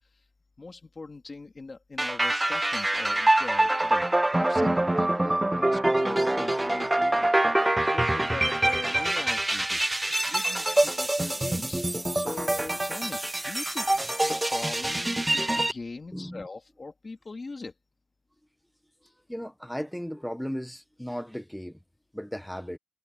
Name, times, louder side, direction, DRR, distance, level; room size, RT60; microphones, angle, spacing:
voice 1, 0.6-7.4 7.9-11.8 12.1-13.9 14.2-17.7, left 3 dB, 80° left, 2.5 m, -41 dB
sound 1, 2.0-15.7, right 1 dB, 30° right, 0.4 m, -25 dB
voice 2, 9.5-10.3 10.6-10.9 16.1-16.5 19.0-21.8 22.1-22.8, equal, 5° left, 1.5 m, -38 dB
wide cardioid pair, 55°, 0 cm